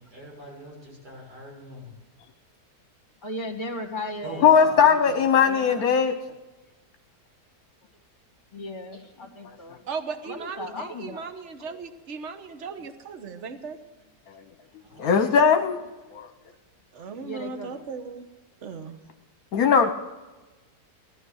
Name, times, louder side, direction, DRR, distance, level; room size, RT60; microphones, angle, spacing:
voice 1, 0.0-1.9 4.2-5.1 14.9-15.2, equal, 75° right, -3 dB, 6.9 m, -42 dB
voice 2, 3.2-4.8 5.3-6.1 8.5-9.8 10.2-11.3 11.6-11.8 15.0-15.4 17.2-17.8 18.8-18.9, left 1 dB, 30° left, 5 dB, 2.3 m, -37 dB
voice 3, 4.4-6.1 15.0-15.8 16.1-16.3 19.5-19.9, left 6 dB, 65° left, 6 dB, 1.3 m, -19 dB
voice 4, 9.9-13.8 16.9-18.2 18.6-19.0, right 5 dB, 45° right, 8 dB, 1.4 m, -37 dB
18.0 x 12.5 x 6.3 m, 1.2 s
omnidirectional pair, 1.7 m